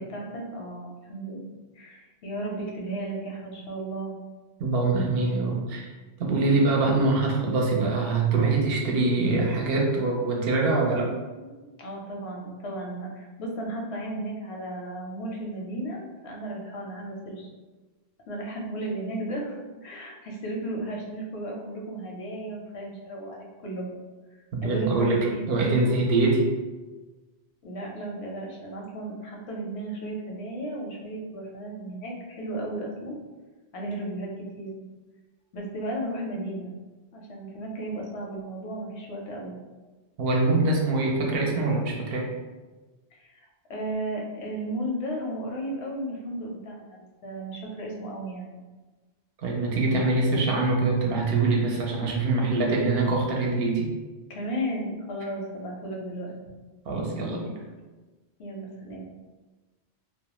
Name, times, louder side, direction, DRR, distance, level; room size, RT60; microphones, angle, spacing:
voice 1, 0.0-1.4 1.7-4.1 11.4-17.5 18.3-23.9 24.6-25.8 27.6-33.2 33.7-34.3 34.6-34.8 35.5-36.7 37.1-39.5 43.1-43.3 43.7-48.6 51.6-52.5 54.3-56.3 58.4-59.0, right 1 dB, 85° left, -1 dB, 0.9 m, -34 dB
voice 2, 4.6-5.9 6.2-11.1 24.5-25.2 25.5-26.5 40.2-42.3 49.4-53.9 56.9-57.6, right 3 dB, 65° right, -1 dB, 0.7 m, -24 dB
2.3 x 2.1 x 2.9 m, 1.2 s
omnidirectional pair, 1.1 m